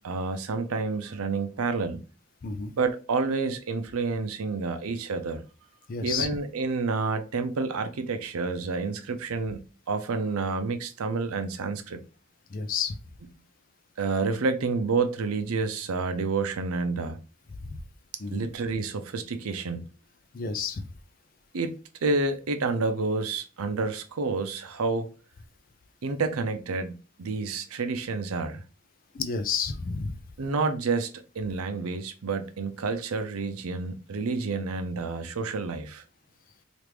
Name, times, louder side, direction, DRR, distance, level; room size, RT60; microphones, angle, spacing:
voice 1, 0.0-2.0 2.8-5.4 6.0-9.6 9.9-12.0 14.0-17.2 18.3-19.8 21.5-21.7 22.0-25.1 26.0-28.6 30.4-36.0, right 4 dB, 85° right, 0.5 m, -29 dB
voice 2, 5.9-6.3 12.5-13.0 18.2-18.5 20.3-20.9 29.1-30.1, left 5 dB, 40° left, 0.4 m, -30 dB
3.0 x 2.5 x 3.3 m
head